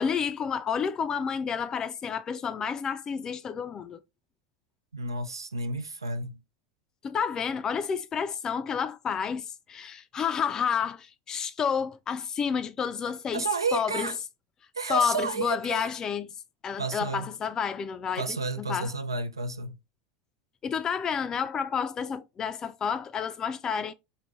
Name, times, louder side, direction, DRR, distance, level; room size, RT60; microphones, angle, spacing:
voice 1, 0.0-4.0 7.0-14.1 14.9-16.3 16.6-18.9 20.6-23.9, left 7 dB, 30° left, 0.4 m, -30 dB
voice 2, 4.9-6.4 13.3-14.2 14.8-15.9 16.8-17.3 18.2-19.7, right 3 dB, 85° right, 0.5 m, -31 dB
4.0 x 3.1 x 3.0 m
figure-of-eight pair, 80°, 2 cm